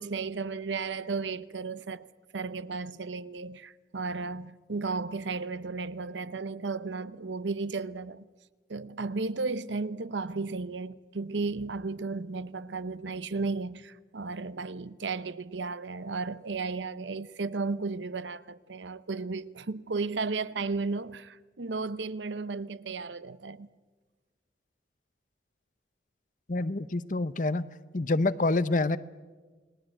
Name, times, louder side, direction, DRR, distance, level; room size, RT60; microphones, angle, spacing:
voice 1, 0.0-2.1 2.3-8.3 8.7-23.7, right 4 dB, 85° right, 0.8 m, -34 dB
voice 2, 26.5-27.7 27.9-29.0, left 2 dB, 45° left, 0.8 m, -27 dB
29.5 x 19.5 x 8.9 m
head